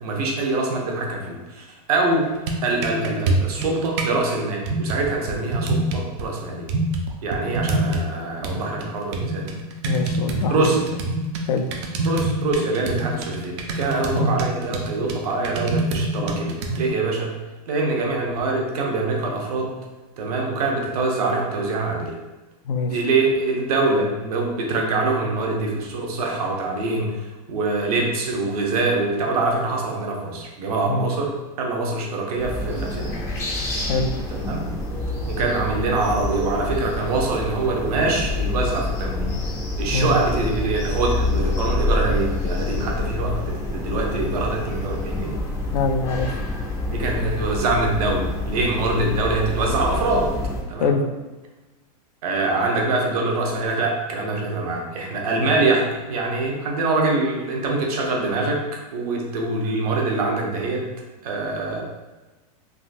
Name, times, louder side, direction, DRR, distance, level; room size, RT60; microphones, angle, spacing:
voice 1, 0.0-2.3 2.6-6.7 7.2-9.5 10.5-10.9 12.0-17.4 17.7-19.7 20.2-22.2 22.9-33.1 34.3-34.7 35.3-39.3 39.8-45.4 46.8-50.3 50.7-51.0 52.2-58.6 58.9-60.9 61.2-61.8, right 3 dB, 70° right, 0 dB, 0.8 m, -24 dB
sound 1, 2.2-4.2 4.7-6.2 6.7-8.1 8.4-16.9, right 2 dB, 45° right, 0.5 m, -26 dB
voice 2, 9.8-10.8 11.5-11.6 14.2-14.4 22.6-23.0 30.9-31.1 33.9-34.1 39.9-40.2 45.7-46.3 50.8-51.0, left 3 dB, 85° left, 6 dB, 0.5 m, -23 dB
sound 2, 32.4-50.6, left 2 dB, 15° left, 0.4 m, -27 dB
3.6 x 2.4 x 2.6 m, 1.1 s
supercardioid pair, 155°, 20 cm